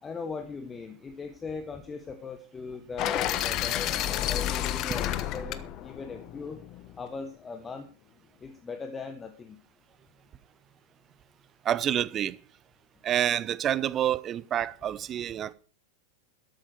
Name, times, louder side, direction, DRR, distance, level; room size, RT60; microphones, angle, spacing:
voice 1, 0.0-6.6 7.0-7.9 8.4-9.6, left 4 dB, 15° left, 1.6 m, -39 dB
sound 1, 3.0-7.0, left 12 dB, 35° left, 1.1 m, -30 dB
voice 2, 11.6-12.4 13.0-15.5, right 10 dB, 30° right, 0.8 m, -28 dB
13.0 x 12.0 x 4.8 m
figure-of-eight pair, 90°, 0 cm